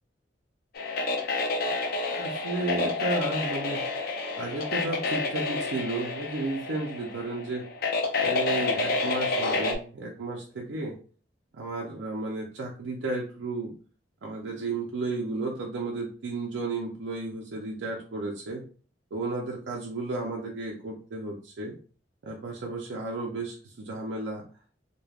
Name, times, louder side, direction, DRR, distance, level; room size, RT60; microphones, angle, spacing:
sound 1, 0.7-9.8, left 3 dB, 55° left, 0.5 m, -29 dB
voice 1, 2.0-3.8 4.4-7.7 8.2-11.0 11.5-13.7 14.2-18.6 19.1-21.7 22.2-24.4, right 2 dB, 80° right, -1 dB, 0.5 m, -33 dB
3.2 x 2.2 x 2.3 m, 0.40 s
head